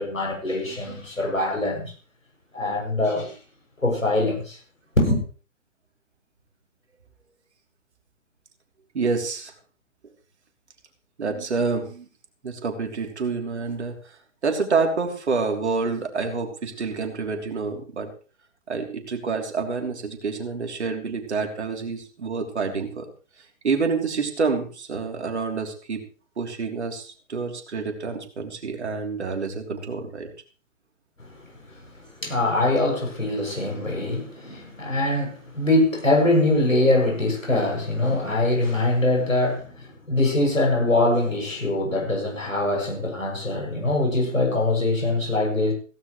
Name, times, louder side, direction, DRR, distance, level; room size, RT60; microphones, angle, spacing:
voice 1, 0.0-1.9 2.5-3.4 3.8-4.6 5.0-5.2 31.8-31.9 32.2-45.7, left 2 dB, 80° left, 7.2 m, -23 dB
voice 2, 8.9-9.5 11.2-12.0 12.4-13.9 14.4-18.1 18.7-23.0 23.6-26.0 26.4-30.3, right 4 dB, 60° right, 3.2 m, -27 dB
16.5 x 15.0 x 3.2 m
figure-of-eight pair, 130°, 39 cm